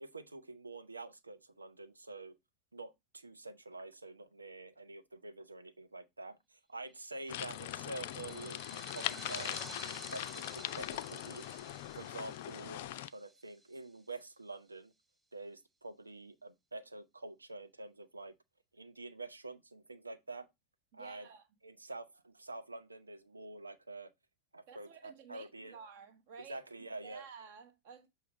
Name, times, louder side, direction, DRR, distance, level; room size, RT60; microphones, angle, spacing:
voice 1, 0.0-2.4 2.7-9.6 10.1-11.6 11.9-14.9 15.3-18.3 18.7-20.5 20.9-21.3 21.6-24.1 24.5-25.8 26.5-27.2, right 2 dB, 80° right, 0.8 m, -47 dB
sound 1, 7.1-14.0, right 2 dB, 15° right, 0.6 m, -52 dB
sound 2, 7.3-13.1, left 14 dB, 50° left, 0.3 m, -41 dB
voice 2, 20.9-21.5 24.7-28.1, right 6 dB, 50° right, 1.2 m, -53 dB
7.0 x 2.8 x 5.0 m
figure-of-eight pair, 90°, 0 cm